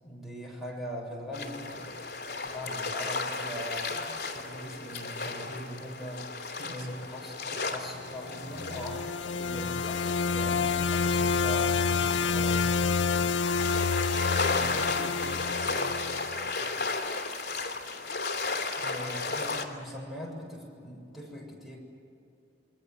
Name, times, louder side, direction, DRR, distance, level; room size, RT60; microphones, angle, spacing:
voice 1, 0.0-2.0 2.5-6.3 6.6-9.1 9.5-13.1 18.7-21.8, equal, ahead, -1 dB, 7.2 m, -41 dB
sound 1, 1.3-19.7, left 3 dB, 60° left, 3.0 m, -35 dB
voice 2, 6.6-6.9 9.3-9.7 14.5-17.0, equal, 60° right, 2 dB, 2.3 m, -46 dB
sound 2, 8.3-16.5, left 5 dB, 75° left, 0.6 m, -28 dB
28.5 x 22.5 x 7.7 m, 2.7 s
head